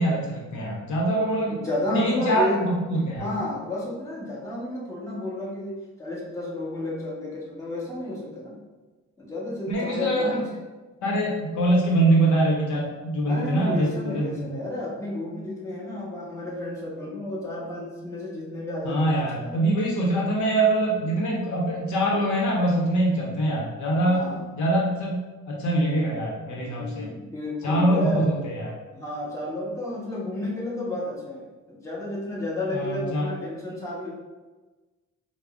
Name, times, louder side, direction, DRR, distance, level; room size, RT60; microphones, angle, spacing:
voice 1, 0.0-1.6 1.9-3.3 9.7-10.5 11.0-14.5 18.8-24.3 24.5-27.1 27.6-28.7 32.7-33.3, right 1 dB, 75° left, -2 dB, 0.7 m, -24 dB
voice 2, 1.5-2.6 3.2-8.6 9.2-10.4 13.3-19.6 24.0-24.4 26.6-28.3 28.9-34.1, left 1 dB, 10° left, -6 dB, 1.1 m, -32 dB
4.6 x 2.0 x 2.4 m, 1.2 s
cardioid pair, 90°, 30 cm